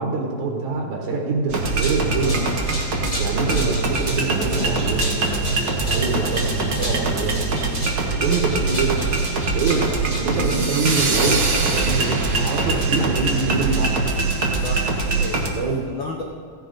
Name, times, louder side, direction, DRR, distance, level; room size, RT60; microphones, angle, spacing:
voice 1, 0.0-2.6 3.2-7.6 8.0-9.1 9.5-9.9 10.2-14.1 15.5-15.9, right 3 dB, 80° right, 0 dB, 2.6 m, -25 dB
sound 1, 1.5-15.5, right 3 dB, 50° right, 1.1 m, -22 dB
sound 2, 1.8-11.4, left 1 dB, 30° left, 0.8 m, -35 dB
voice 2, 2.2-2.6 3.3-3.7 9.7-9.9 14.5-15.5 15.9-16.2, left 4 dB, 80° left, 0 dB, 1.0 m, -33 dB
15.5 x 10.0 x 3.9 m, 2.4 s
omnidirectional pair, 3.4 m